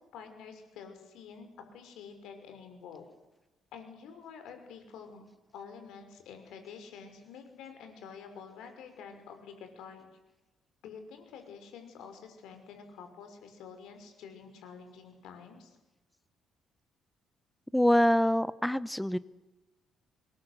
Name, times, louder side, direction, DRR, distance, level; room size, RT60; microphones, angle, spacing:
voice 1, 0.1-3.0 3.7-5.2 5.5-10.1 10.8-15.8, left 6 dB, 85° left, 6 dB, 5.9 m, -48 dB
voice 2, 17.7-19.2, equal, 5° left, 16 dB, 0.8 m, -25 dB
26.5 x 21.0 x 8.3 m, 1.1 s
cardioid pair, 160°, 0 cm